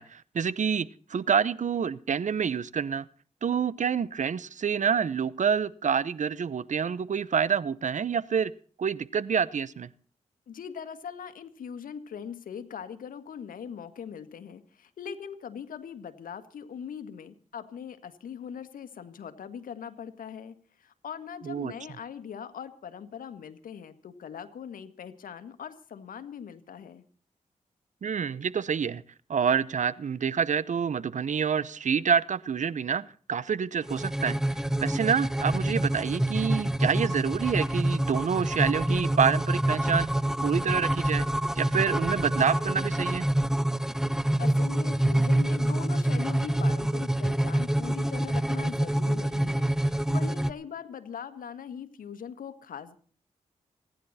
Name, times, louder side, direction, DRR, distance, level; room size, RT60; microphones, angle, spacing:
voice 1, 0.0-3.1 3.4-8.5 8.8-9.9 21.4-21.7 28.0-29.0 29.3-34.4 34.8-40.1 40.4-41.3 41.6-43.3, right 7 dB, 60° right, 19 dB, 0.8 m, -27 dB
voice 2, 10.5-27.0 44.4-53.0, left 7 dB, 80° left, 10 dB, 1.6 m, -41 dB
sound 1, 33.8-50.5, right 1 dB, 5° right, 0.8 m, -26 dB
26.5 x 10.5 x 4.2 m, 0.43 s
cardioid pair, 45°, 14 cm